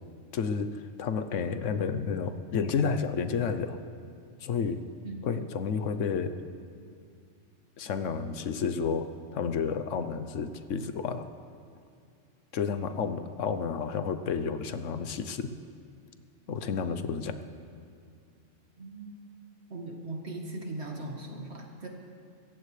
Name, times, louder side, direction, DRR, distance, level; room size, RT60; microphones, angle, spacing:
voice 1, 0.3-3.8 4.4-4.8 5.2-6.4 7.8-11.3 12.5-15.5 16.5-17.4, left 6 dB, 80° left, 10 dB, 1.1 m, -31 dB
voice 2, 18.8-19.2 19.7-21.9, right 2 dB, 60° right, 1 dB, 2.1 m, -39 dB
25.5 x 15.0 x 3.3 m, 2.3 s
omnidirectional pair, 1.3 m